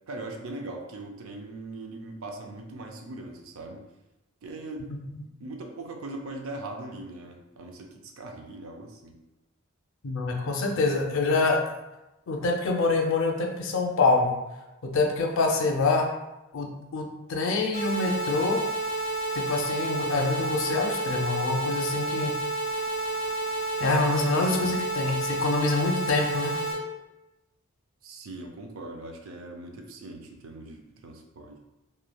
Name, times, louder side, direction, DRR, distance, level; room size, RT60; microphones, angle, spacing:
voice 1, 0.1-3.8 4.4-4.9 5.4-9.1 24.4-24.8 28.0-31.6, right 2 dB, 80° right, 3 dB, 0.4 m, -40 dB
voice 2, 10.0-11.6 12.3-14.3 14.8-16.1 16.5-18.6 19.3-22.3 23.8-26.6, left 3 dB, 65° left, 1 dB, 0.5 m, -26 dB
sound 1, 17.7-26.7, right 2 dB, 40° right, 1.0 m, -30 dB
3.1 x 2.2 x 2.2 m, 0.99 s
head